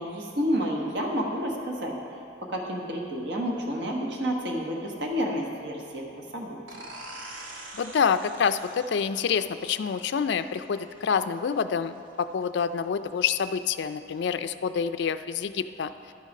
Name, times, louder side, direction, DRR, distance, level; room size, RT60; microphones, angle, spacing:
voice 1, 0.0-6.6, equal, 60° right, 0 dB, 1.2 m, -30 dB
sound 1, 6.7-12.1, right 1 dB, 90° right, 1.2 m, -45 dB
voice 2, 7.7-15.9, left 6 dB, 60° left, 11 dB, 0.3 m, -27 dB
12.0 x 6.3 x 5.3 m, 2.6 s
head